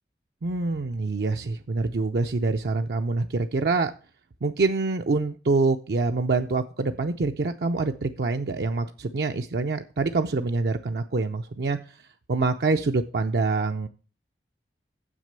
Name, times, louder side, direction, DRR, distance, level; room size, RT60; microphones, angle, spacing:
voice 1, 0.4-3.9 4.4-11.8 12.3-13.9, right 3 dB, 65° right, 5 dB, 0.5 m, -25 dB
7.4 x 6.2 x 6.7 m, 0.38 s
head